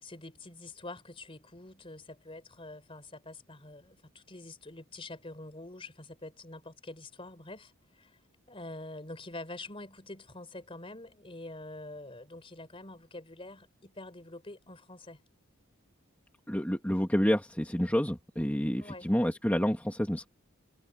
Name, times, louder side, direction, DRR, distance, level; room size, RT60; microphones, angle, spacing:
voice 1, 0.0-8.2 8.5-15.2 18.8-19.1, left 2 dB, 25° left, 4.1 m, -46 dB
voice 2, 16.5-20.3, equal, 10° left, 1.9 m, -28 dB
head